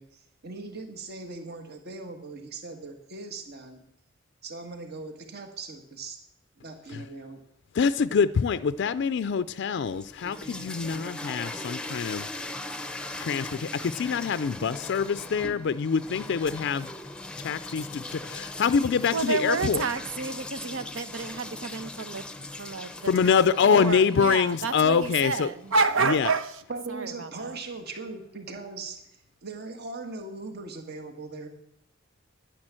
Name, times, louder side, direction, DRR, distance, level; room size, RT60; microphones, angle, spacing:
voice 1, 0.0-3.8 4.4-6.2 6.6-7.4 14.6-14.8 26.7-29.0 29.4-31.5, right 3 dB, 55° right, 1.7 m, -39 dB
voice 2, 7.7-12.3 13.2-16.9 17.4-19.8 23.1-25.5 26.1-26.3, left 6 dB, 60° left, 0.4 m, -25 dB
sound 1, 9.8-25.8, left 2 dB, 5° left, 0.7 m, -40 dB
voice 3, 19.1-26.6 26.9-27.6, right 4 dB, 80° right, 1.0 m, -30 dB
10.5 x 10.5 x 7.5 m
head